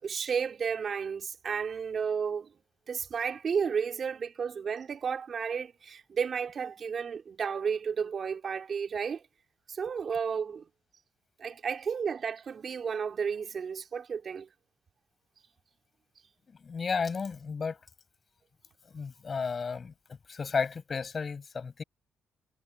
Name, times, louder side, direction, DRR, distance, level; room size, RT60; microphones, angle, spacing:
voice 1, 0.0-2.5 2.9-9.2 9.7-10.6 11.4-14.5, right 6 dB, 50° right, 3.8 m, -32 dB
voice 2, 16.6-17.8 18.9-21.8, left 5 dB, 40° left, 7.4 m, -33 dB
cardioid pair, 90°, 0 cm